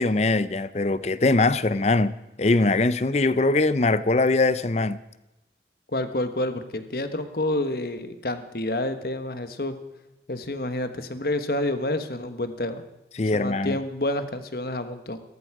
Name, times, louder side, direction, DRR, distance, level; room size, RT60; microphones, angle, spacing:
voice 1, 0.0-2.1 2.4-5.0 13.2-13.8, left 2 dB, 40° left, 0.6 m, -22 dB
voice 2, 5.9-9.7 10.3-12.8 13.3-15.2, left 1 dB, 55° left, 1.3 m, -28 dB
18.0 x 14.0 x 4.9 m
head